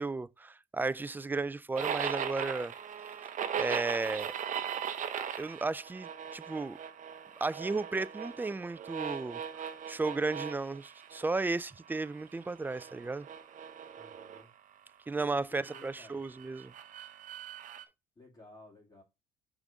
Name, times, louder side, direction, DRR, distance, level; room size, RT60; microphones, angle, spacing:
voice 1, 0.0-2.7 3.5-4.3 5.4-6.8 7.4-9.4 9.9-13.3 15.1-16.7, right 3 dB, 10° right, 0.3 m, -34 dB
sound 1, 1.7-11.5 11.9-14.4 15.6-17.8, right 8 dB, 50° right, 0.9 m, -39 dB
voice 2, 13.9-14.5 15.2-16.2 18.2-19.0, left 2 dB, 20° left, 2.6 m, -55 dB
6.4 x 3.8 x 5.0 m
cardioid pair, 110°, 17 cm